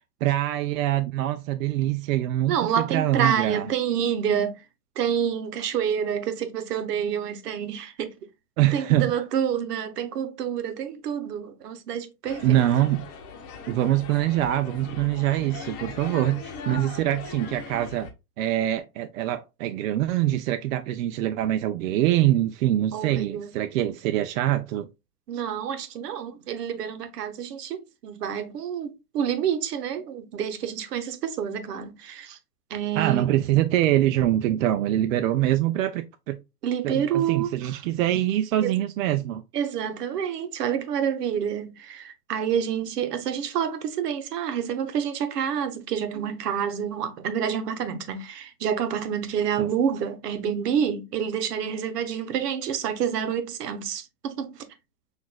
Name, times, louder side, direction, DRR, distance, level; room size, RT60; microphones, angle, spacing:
voice 1, 0.2-3.6 8.6-9.1 12.4-13.0 13.7-18.1 18.4-24.9 33.0-36.4 36.8-39.4 49.6-49.7, right 13 dB, 60° right, 0.5 m, -24 dB
voice 2, 2.5-4.6 5.0-8.1 8.7-12.6 22.9-23.5 25.3-32.4 32.7-33.3 36.6-37.8 38.6-38.7 39.5-54.6, right 8 dB, 75° right, 1.0 m, -28 dB
sound 1, 12.2-18.1, left 5 dB, 30° left, 0.9 m, -40 dB
5.9 x 2.5 x 2.2 m
hypercardioid pair, 130°, 48 cm